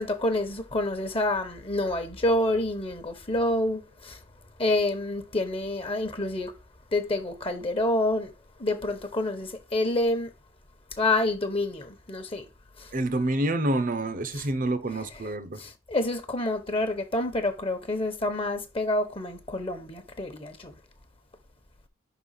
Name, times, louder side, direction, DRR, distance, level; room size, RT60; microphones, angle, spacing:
voice 1, 0.0-4.2 4.6-6.5 6.9-8.3 8.6-10.3 10.9-12.4 12.8-12.9 14.3-14.5 14.9-15.3 15.6-20.7, left 1 dB, 30° left, 1.0 m, -28 dB
voice 2, 12.9-15.6, right 1 dB, 45° right, 0.8 m, -27 dB
5.6 x 3.9 x 5.7 m
head